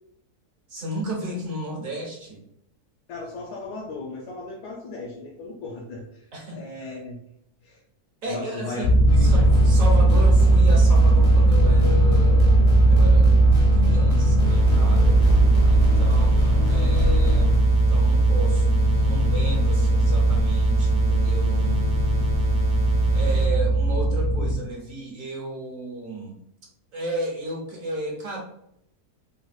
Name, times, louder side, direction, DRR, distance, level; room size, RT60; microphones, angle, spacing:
voice 1, 0.7-2.4 6.3-6.6 8.2-8.9 9.2-13.3 13.7-15.2 15.7-21.9 23.1-26.4 26.9-28.4, right 1 dB, 60° right, -2 dB, 1.2 m, -33 dB
voice 2, 3.1-7.2 7.6-7.8 8.3-9.3, left 3 dB, 85° left, -2 dB, 1.2 m, -36 dB
sound 1, 8.8-24.6, right 2 dB, 65° left, 0.7 m, -18 dB
sound 2, 9.1-17.6, equal, 40° left, 0.4 m, -26 dB
sound 3, 14.4-23.4, left 1 dB, 90° right, 1.2 m, -37 dB
3.9 x 2.1 x 2.4 m, 0.75 s
omnidirectional pair, 1.7 m